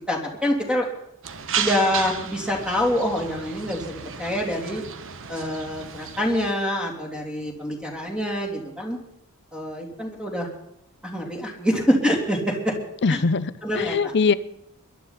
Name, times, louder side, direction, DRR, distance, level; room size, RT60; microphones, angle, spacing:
voice 1, 0.1-0.9 1.6-4.8 5.3-9.0 9.5-10.5 11.0-12.7 13.1-13.2 13.6-14.1, equal, 5° right, 0 dB, 3.2 m, -25 dB
sound 1, 1.2-6.5, right 7 dB, 60° right, 1.1 m, -33 dB
voice 2, 13.0-14.3, left 4 dB, 50° left, 15 dB, 0.6 m, -22 dB
22.5 x 12.0 x 4.2 m, 0.79 s
head